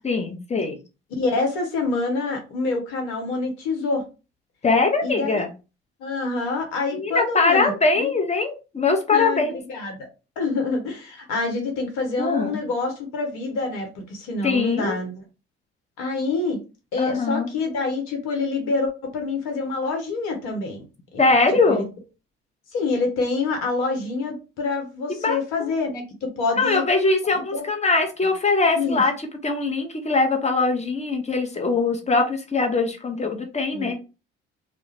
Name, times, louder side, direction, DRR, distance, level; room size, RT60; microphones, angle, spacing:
voice 1, 0.0-0.8 4.6-5.5 6.9-9.6 12.2-12.6 14.4-15.0 17.0-17.5 21.2-21.9 25.1-25.7 26.6-29.1 29.4-33.9, left 3 dB, 20° left, 4 dB, 0.8 m, -22 dB
voice 2, 1.2-4.0 5.0-5.4 6.0-8.1 9.1-10.1 10.4-15.2 16.0-16.6 16.9-20.8 21.1-21.2 21.7-21.8 22.7-26.8 27.3-27.7 28.7-29.0 33.7-33.9, left 3 dB, 75° left, 3 dB, 1.0 m, -26 dB
2.3 x 2.1 x 3.2 m, 0.30 s
hypercardioid pair, 50°, 31 cm